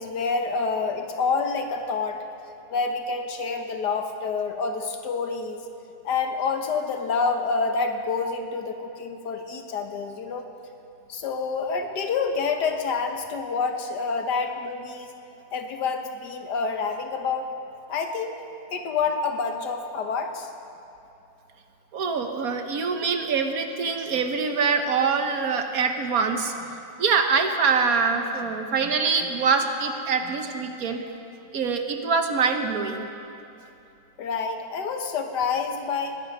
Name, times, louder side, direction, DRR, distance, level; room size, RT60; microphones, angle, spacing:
voice 1, 0.0-2.2 2.7-5.6 6.0-10.4 11.1-15.1 15.5-17.5 17.9-18.4 18.7-20.5 34.2-36.2, left 4 dB, 85° left, 5 dB, 1.7 m, -27 dB
voice 2, 21.9-26.5 27.0-31.0 31.5-33.1, right 5 dB, 65° right, 6 dB, 1.4 m, -24 dB
20.0 x 11.0 x 5.4 m, 2.8 s
omnidirectional pair, 1.8 m